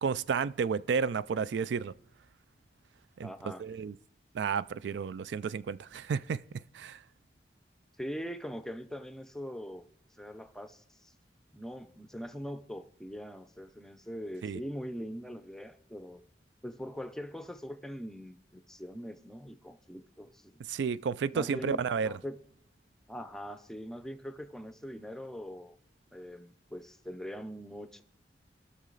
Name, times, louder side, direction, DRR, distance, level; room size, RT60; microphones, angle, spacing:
voice 1, 0.0-1.9 3.2-3.3 3.6-3.9 4.3-7.0 14.4-14.6 20.7-22.1, right 6 dB, 85° right, 0.3 m, -32 dB
voice 2, 3.2-3.6 8.0-9.8 10.2-11.1 11.5-16.2 16.6-20.5 21.3-22.4 23.1-25.8 26.1-28.0, equal, 5° left, 0.5 m, -42 dB
19.0 x 6.5 x 3.9 m
head